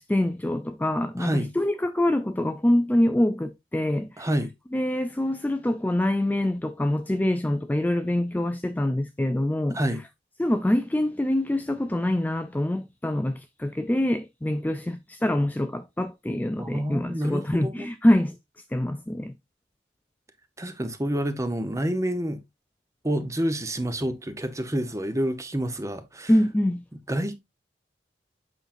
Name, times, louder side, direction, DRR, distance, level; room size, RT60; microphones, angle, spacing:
voice 1, 0.0-4.3 4.7-9.8 10.4-18.4 18.7-19.3 26.3-26.8, left 1 dB, 10° left, 0.4 m, -25 dB
voice 2, 1.2-1.5 4.2-4.5 9.7-10.0 16.6-17.9 20.6-22.4 23.0-26.3 27.1-27.4, equal, 20° right, 0.9 m, -28 dB
8.1 x 5.8 x 2.6 m
head